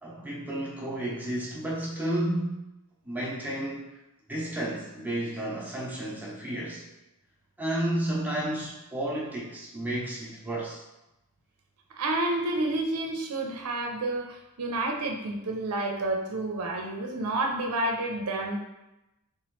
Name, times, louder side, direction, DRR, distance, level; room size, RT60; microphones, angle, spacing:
voice 1, 0.0-2.6 3.0-3.9 4.3-6.8 7.6-10.8, right 1 dB, 10° right, -5 dB, 0.8 m, -32 dB
voice 2, 12.0-18.6, right 2 dB, 90° right, 2 dB, 0.5 m, -29 dB
3.5 x 3.0 x 3.1 m, 0.95 s
head